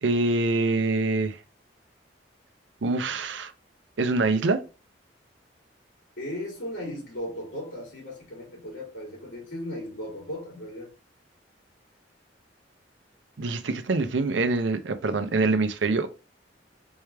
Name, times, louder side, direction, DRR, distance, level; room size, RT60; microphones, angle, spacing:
voice 1, 0.0-1.4 2.8-3.5 4.0-4.6 13.4-16.1, right 3 dB, 75° right, 0.6 m, -25 dB
voice 2, 6.2-10.9, left 1 dB, 90° left, 2.7 m, -36 dB
4.5 x 3.3 x 3.3 m
head